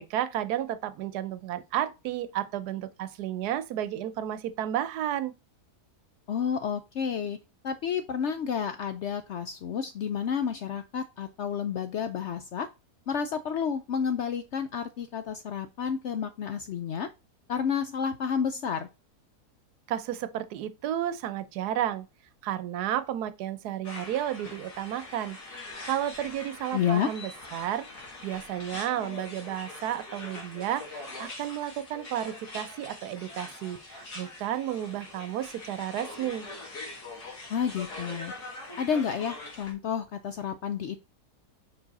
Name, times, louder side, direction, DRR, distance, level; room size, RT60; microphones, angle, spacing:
voice 1, 0.0-5.3 19.9-22.1 22.4-25.4 25.9-27.9 28.2-36.5, right 11 dB, 85° right, 1.2 m, -32 dB
voice 2, 6.3-7.4 7.6-12.7 13.1-17.1 17.5-18.9 26.7-27.1 37.5-38.3 38.8-41.0, left 7 dB, 70° left, 0.7 m, -30 dB
sound 1, 23.8-39.7, left 2 dB, 85° left, 2.5 m, -43 dB
5.3 x 4.7 x 4.1 m
omnidirectional pair, 1.7 m